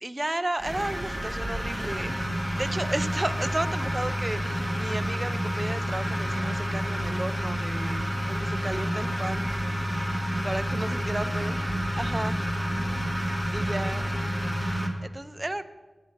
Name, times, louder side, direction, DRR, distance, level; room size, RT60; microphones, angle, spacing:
voice 1, 0.0-2.1 2.6-8.0 8.3-9.5 10.0-11.5 12.0-12.4 13.5-14.0 14.6-15.6, right 1 dB, 25° right, 10 dB, 0.5 m, -33 dB
sound 1, 0.6-14.9, equal, ahead, 1.4 m, -29 dB
voice 2, 10.1-11.6 12.2-14.4, equal, 85° left, -3 dB, 3.9 m, -47 dB
9.4 x 7.5 x 5.9 m, 1.2 s
wide cardioid pair, 70°, 0 cm